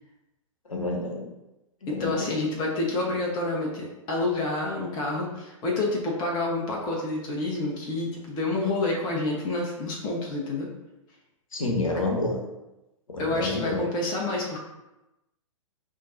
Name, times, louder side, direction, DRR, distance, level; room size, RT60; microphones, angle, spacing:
voice 1, 0.7-1.3 1.8-2.4 11.5-12.4 13.1-13.8, left 2 dB, 75° left, 0 dB, 1.0 m, -29 dB
voice 2, 1.9-10.7 13.2-14.6, left 2 dB, 25° left, -2 dB, 0.8 m, -28 dB
5.5 x 2.7 x 2.6 m, 0.97 s
figure-of-eight pair, 110°, 17 cm